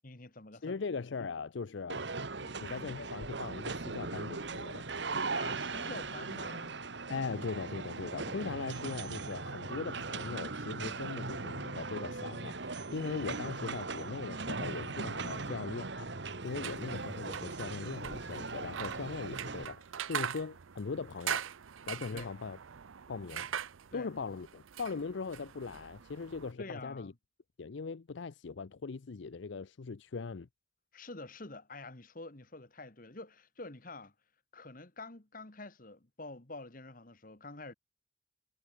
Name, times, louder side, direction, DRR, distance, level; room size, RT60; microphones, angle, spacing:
voice 1, 0.0-0.8 1.9-2.1 2.4-2.6 5.3-6.8 15.3-15.7 22.1-22.3 23.9-24.1 26.6-27.1 30.9-34.1 34.5-37.7, left 2 dB, 45° left, 1.7 m, -47 dB
voice 2, 0.6-2.0 2.6-4.8 7.1-16.1 16.4-21.5 21.9-22.6 23.1-23.5 23.9-27.1 27.6-30.5, left 4 dB, 65° left, 0.5 m, -40 dB
sound 1, 1.9-19.7, right 3 dB, 60° right, 1.5 m, -39 dB
sound 2, 16.5-26.5, right 9 dB, 85° right, 0.6 m, -42 dB
head